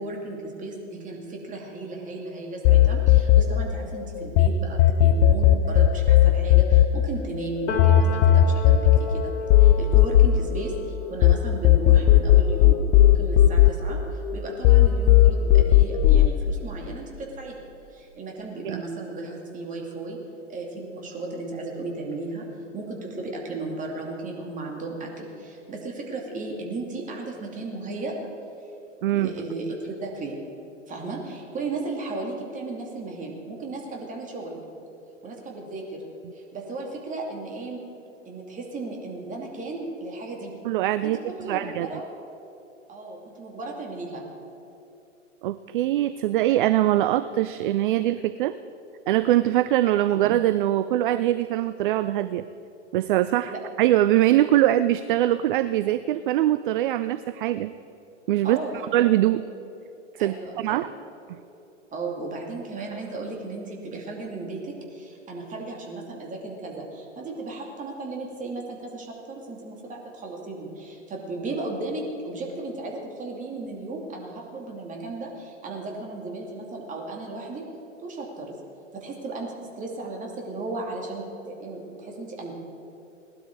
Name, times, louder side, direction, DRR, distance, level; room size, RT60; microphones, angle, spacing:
voice 1, 0.0-9.3 9.6-12.8 13.1-17.6 17.9-20.2 20.5-22.5 22.7-28.1 29.1-30.4 30.9-34.6 35.2-36.0 36.3-37.8 38.3-40.5 41.0-42.0 42.9-44.2 53.5-53.6 58.4-58.7 60.2-60.8 61.9-77.6 78.0-78.6 78.9-82.5, right 2 dB, 20° right, 0 dB, 2.5 m, -35 dB
sound 1, 2.6-4.5 4.8-11.3 11.6-14.3 14.6-16.3, left 13 dB, 20° left, 0.3 m, -16 dB
Piano, 7.7-15.3 15.6-17.2, left 3 dB, 65° left, 3.8 m, -37 dB
voice 2, 29.0-29.3 40.6-41.9 45.4-48.6 49.1-52.4 52.9-53.5 53.8-57.7 58.3-58.6 58.9-59.4 60.1-60.9 61.3-61.4, right 14 dB, 45° right, 14 dB, 0.4 m, -22 dB
18.5 x 12.5 x 4.7 m, 2.8 s
figure-of-eight pair, 105°, 37 cm